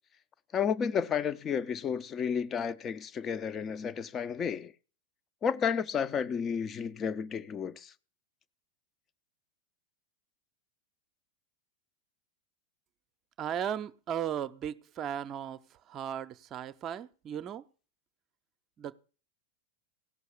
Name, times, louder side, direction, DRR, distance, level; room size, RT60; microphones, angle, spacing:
voice 1, 0.5-4.7 5.4-7.9, left 7 dB, 25° left, 0.7 m, -32 dB
voice 2, 13.4-15.6 15.9-17.6 18.8-19.0, right 9 dB, 30° right, 0.7 m, -36 dB
16.5 x 6.3 x 6.8 m
figure-of-eight pair, 90°, 0 cm